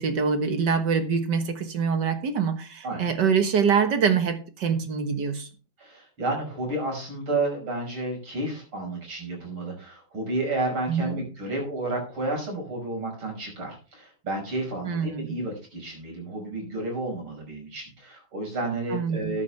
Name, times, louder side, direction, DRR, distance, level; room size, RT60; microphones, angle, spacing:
voice 1, 0.0-5.5 10.9-11.2 14.9-15.3 18.9-19.3, right 6 dB, 60° right, 1.9 m, -25 dB
voice 2, 5.8-19.4, right 2 dB, 90° right, 6.3 m, -31 dB
13.5 x 9.6 x 3.4 m
omnidirectional pair, 2.3 m